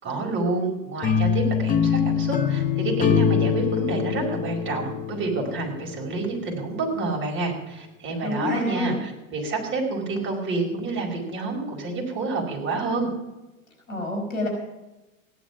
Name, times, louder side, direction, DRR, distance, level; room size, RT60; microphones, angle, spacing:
voice 1, 0.0-13.1, right 3 dB, 30° right, 0 dB, 4.9 m, -28 dB
sound 1, 1.0-6.1, left 7 dB, 20° left, 0.9 m, -24 dB
voice 2, 8.2-9.0 13.9-14.5, left 2 dB, 80° left, 1 dB, 4.9 m, -27 dB
16.0 x 10.5 x 5.9 m, 1.0 s
figure-of-eight pair, 85°, 41 cm